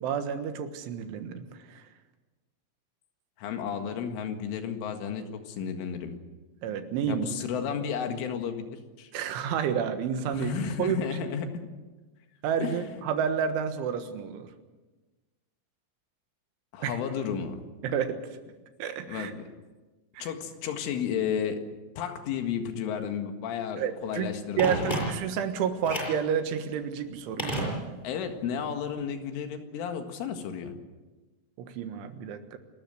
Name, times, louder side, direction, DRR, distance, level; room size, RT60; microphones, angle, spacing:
voice 1, 0.0-1.8 6.6-7.3 9.1-10.5 10.8-11.0 12.4-14.5 16.8-16.9 17.8-18.2 18.8-19.3 20.2-20.3 23.8-24.3 24.6-27.7 31.6-32.6, right 7 dB, 75° right, 8 dB, 3.7 m, -30 dB
voice 2, 3.4-6.1 7.1-9.1 10.3-11.5 12.6-13.0 16.7-17.6 19.1-19.4 20.2-21.6 22.0-25.0 28.0-30.7, left 7 dB, 70° left, 6 dB, 4.2 m, -33 dB
Telephone, 24.6-25.5 25.8-26.3 27.4-28.2 28.5-28.6, right 1 dB, 10° left, 6.6 m, -31 dB
29.0 x 13.5 x 8.0 m, 1.2 s
omnidirectional pair, 5.9 m